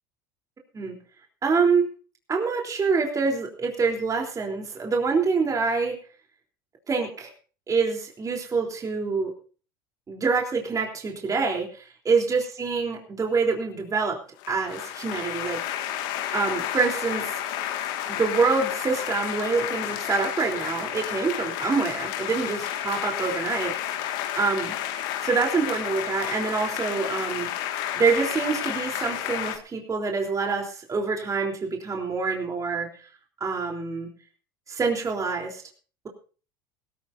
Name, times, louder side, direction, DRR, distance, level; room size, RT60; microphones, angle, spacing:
voice 1, 1.4-1.8 2.3-5.9 6.9-7.3 7.7-9.3 10.1-14.2 14.5-15.6 16.3-17.4 18.1-23.7 24.4-24.7 25.2-27.5 28.0-32.9 33.4-34.1 34.7-35.6, right 4 dB, 25° right, 1 dB, 3.6 m, -26 dB
sound 1, 14.4-29.6, left 11 dB, 70° left, 2.0 m, -31 dB
17.5 x 16.5 x 2.7 m, 0.38 s
hypercardioid pair, 85°, 12 cm